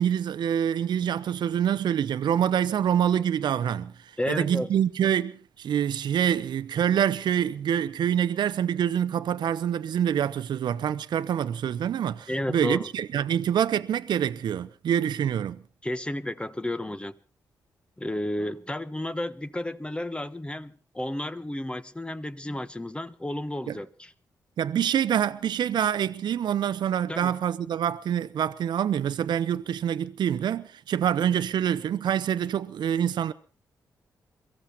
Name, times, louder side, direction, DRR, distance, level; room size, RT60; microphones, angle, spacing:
voice 1, 0.0-3.9 4.3-15.6 23.7-23.8 24.6-33.3, right 9 dB, 70° right, 0.8 m, -26 dB
voice 2, 4.2-4.7 12.3-12.9 15.8-17.1 18.0-24.1 27.1-27.3, left 1 dB, 15° left, 1.3 m, -32 dB
23.0 x 15.0 x 4.2 m
supercardioid pair, 55°, 8 cm